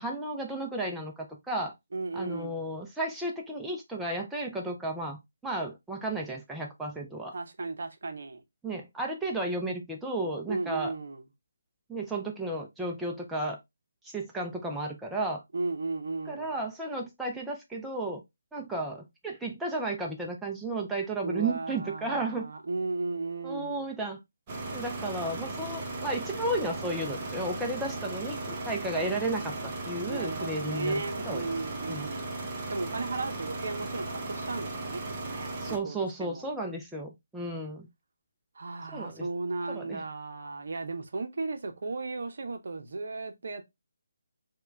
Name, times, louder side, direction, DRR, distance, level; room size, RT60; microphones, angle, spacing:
voice 1, 0.0-1.7 2.1-7.3 8.6-10.9 11.9-13.6 14.0-15.4 16.3-18.2 18.5-22.5 23.4-24.2 24.7-31.5 31.9-32.1 35.6-37.9 38.9-39.3 39.7-40.0, right 2 dB, 5° right, 0.4 m, -33 dB
voice 2, 1.9-2.6 7.3-8.4 10.5-11.2 15.5-16.6 21.2-23.9 30.1-32.3 32.7-36.5 38.6-43.6, right 3 dB, 55° right, 0.7 m, -35 dB
sound 1, 24.5-35.8, right 2 dB, 25° right, 0.9 m, -36 dB
4.3 x 2.2 x 3.1 m
figure-of-eight pair, 150°, 0 cm